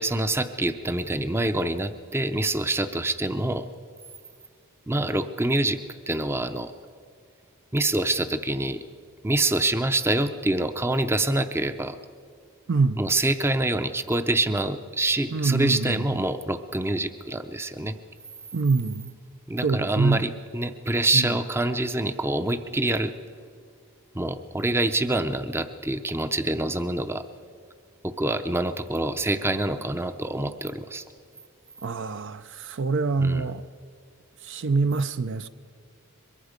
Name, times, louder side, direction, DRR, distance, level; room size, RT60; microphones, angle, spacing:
voice 1, 0.0-3.7 4.9-5.8 6.1-6.7 7.7-8.8 9.2-12.0 13.0-17.9 19.5-23.1 24.1-27.2 28.0-31.0 33.2-33.5, right 2 dB, 10° right, 0.6 m, -26 dB
voice 2, 12.7-13.0 15.3-16.0 18.5-19.1 19.6-20.3 21.1-21.3 31.8-33.6 34.4-35.5, right 4 dB, 55° right, 0.5 m, -25 dB
23.0 x 22.5 x 5.1 m
head